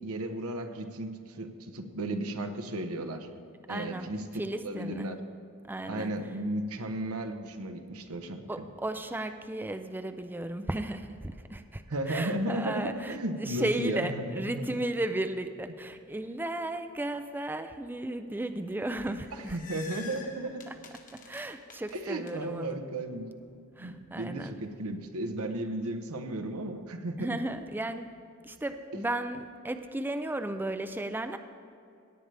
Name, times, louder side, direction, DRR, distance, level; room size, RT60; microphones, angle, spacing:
voice 1, 0.0-3.3 3.7-5.2 5.9-8.7 11.9-14.7 19.3-20.7 21.9-23.3 23.8-27.5, right 1 dB, 85° right, 7 dB, 0.9 m, -34 dB
voice 2, 3.7-4.1 4.3-5.1 5.7-6.1 8.5-19.6 21.1-22.8 23.8-24.5 27.2-28.1 28.4-31.4, right 1 dB, 10° right, 8 dB, 0.3 m, -35 dB
sound 1, 19.1-22.3, left 5 dB, 40° left, 1.2 m, -47 dB
17.5 x 9.1 x 3.4 m, 2.6 s
head